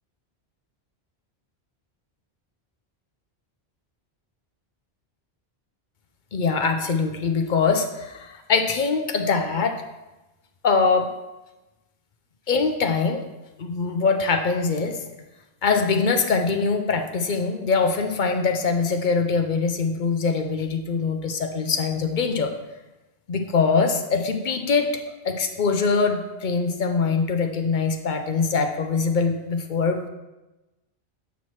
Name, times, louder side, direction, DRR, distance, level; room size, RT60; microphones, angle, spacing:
voice 1, 6.3-9.8 10.6-11.1 12.5-13.2 13.6-15.0 15.6-22.5 23.3-24.9 25.2-30.1, left 4 dB, 55° left, 5 dB, 0.7 m, -23 dB
8.2 x 5.7 x 3.1 m, 1.1 s
omnidirectional pair, 1.1 m